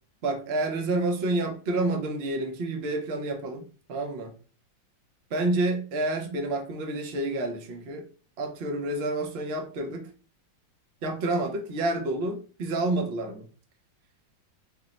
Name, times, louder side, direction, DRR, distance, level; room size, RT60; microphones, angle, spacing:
voice 1, 0.2-4.3 5.3-8.1 8.4-10.1 11.0-13.5, right 2 dB, 80° right, 4 dB, 0.5 m, -29 dB
3.6 x 2.0 x 3.9 m, 0.37 s
omnidirectional pair, 2.0 m